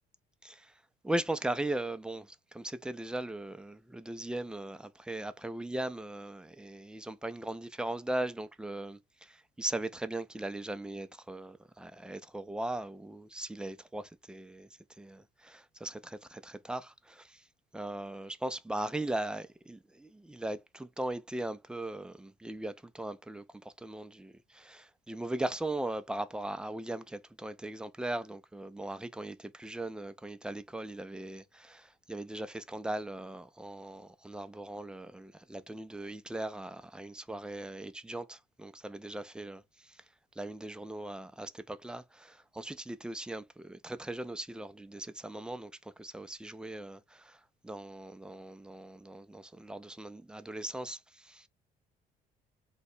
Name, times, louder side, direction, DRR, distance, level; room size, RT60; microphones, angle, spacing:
voice 1, 0.4-14.7 15.0-17.5 17.7-40.1 40.4-51.5, right 1 dB, 5° right, 0.3 m, -39 dB
2.8 x 2.2 x 4.1 m
cardioid pair, 110°, 17 cm